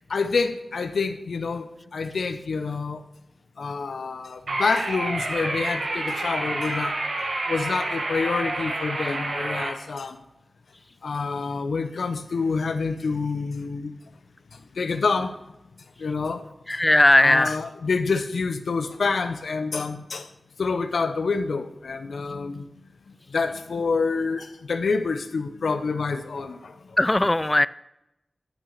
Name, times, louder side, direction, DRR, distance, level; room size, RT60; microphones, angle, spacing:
voice 1, 0.1-3.0 3.6-7.0 7.5-10.2 11.0-14.0 14.8-15.4 16.0-16.5 17.2-20.3 20.6-22.6 23.3-26.7, left 4 dB, 90° left, 0.7 m, -27 dB
sound 1, 4.5-9.7, right 2 dB, 75° right, 1.8 m, -29 dB
voice 2, 16.7-17.6 27.0-27.7, left 1 dB, 25° left, 0.4 m, -18 dB
11.5 x 5.9 x 6.5 m
wide cardioid pair, 55°, 0 cm